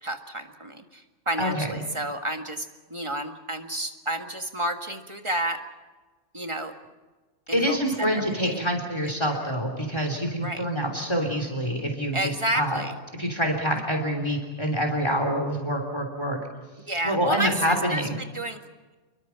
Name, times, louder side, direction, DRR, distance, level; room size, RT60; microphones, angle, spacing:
voice 1, 0.0-5.6 6.3-6.7 7.5-8.7 10.4-10.6 12.1-12.9 16.9-18.0 18.3-18.6, right 1 dB, 25° right, 5 dB, 1.9 m, -31 dB
voice 2, 1.4-1.7 7.5-12.8 13.1-16.4 17.0-18.2, equal, 20° left, 4 dB, 3.4 m, -26 dB
28.0 x 23.0 x 5.9 m, 1.3 s
omnidirectional pair, 1.2 m